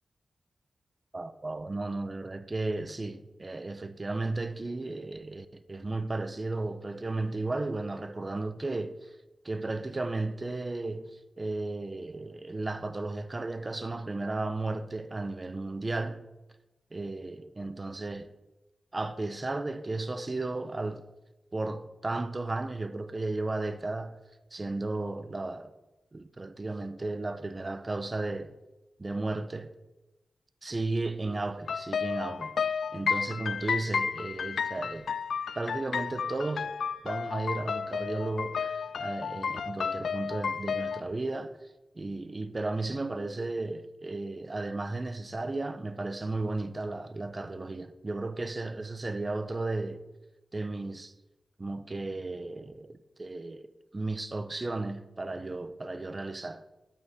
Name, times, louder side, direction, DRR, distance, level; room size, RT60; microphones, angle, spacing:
voice 1, 1.1-9.2 9.4-16.2 16.9-18.3 18.9-21.1 21.5-24.2 24.5-25.7 26.1-28.5 29.0-29.7 30.6-32.6 32.9-35.1 35.5-36.7 37.0-41.6 41.9-50.0 50.5-51.1 51.6-56.6, right 2 dB, 35° right, 0.8 m, -34 dB
sound 1, 31.7-41.0, left 6 dB, 90° left, 0.3 m, -32 dB
9.7 x 8.9 x 5.8 m
wide cardioid pair, 80°, 0 cm